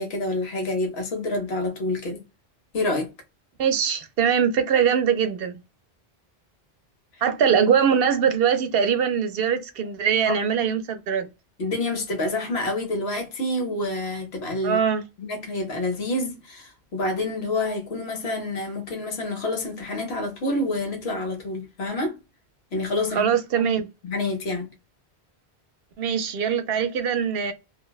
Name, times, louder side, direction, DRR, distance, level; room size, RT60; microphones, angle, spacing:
voice 1, 0.0-2.2 2.7-3.1 10.3-10.4 11.6-14.8 15.2-22.2 22.7-23.3 24.0-24.7, left 2 dB, 75° left, 1.1 m, -28 dB
voice 2, 3.6-5.5 7.2-11.3 14.6-15.0 23.1-23.9 26.0-27.5, right 7 dB, 70° right, 0.7 m, -22 dB
2.6 x 2.1 x 2.3 m
omnidirectional pair, 1.1 m